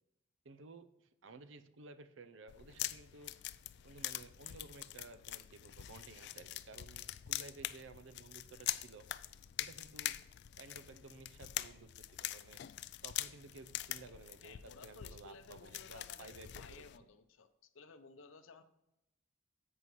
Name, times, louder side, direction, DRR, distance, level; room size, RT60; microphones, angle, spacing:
voice 1, 0.4-3.3 3.8-9.1 9.6-10.1 10.6-12.6 13.0-16.8, right 3 dB, 70° right, 12 dB, 0.6 m, -55 dB
sound 1, 2.5-17.0, left 14 dB, 60° left, 0.3 m, -44 dB
voice 2, 14.4-18.6, left 4 dB, 80° left, 10 dB, 0.7 m, -57 dB
11.0 x 8.1 x 3.1 m, 0.91 s
head